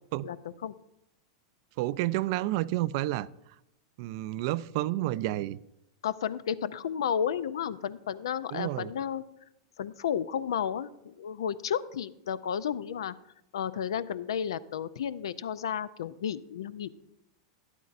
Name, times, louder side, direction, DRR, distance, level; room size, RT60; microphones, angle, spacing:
voice 1, 1.8-3.3 4.0-5.6 8.5-8.9, right 16 dB, 55° right, 0.3 m, -30 dB
voice 2, 6.0-9.2 9.8-13.1 13.5-16.9, left 8 dB, 75° left, 0.4 m, -32 dB
12.5 x 10.5 x 2.5 m
hypercardioid pair, 105°, 3 cm